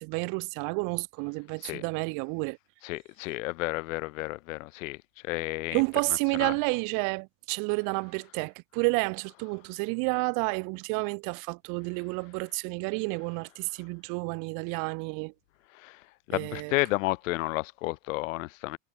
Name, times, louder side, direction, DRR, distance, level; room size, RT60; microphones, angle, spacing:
voice 1, 0.0-2.6 5.7-15.3 16.3-16.7, right 35 dB, 55° right, 0.9 m, -30 dB
voice 2, 2.8-5.0 5.2-5.8 6.4-6.5 15.7-16.0 16.3-18.8, left 21 dB, 85° left, 2.9 m, -31 dB
supercardioid pair, 150°, 38 cm